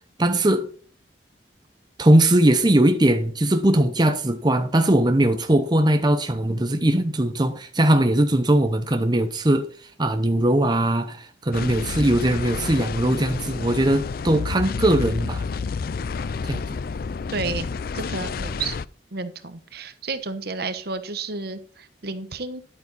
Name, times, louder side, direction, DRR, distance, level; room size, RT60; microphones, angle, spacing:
voice 1, 0.2-0.7 2.0-9.7 10.0-15.5 16.4-16.6, right 1 dB, 25° right, 0.8 m, -20 dB
sound 1, 11.5-18.9, left 5 dB, 55° left, 0.4 m, -30 dB
voice 2, 17.3-17.7 17.9-18.7 19.1-22.6, right 4 dB, 60° right, 1.1 m, -31 dB
11.0 x 8.7 x 4.1 m
head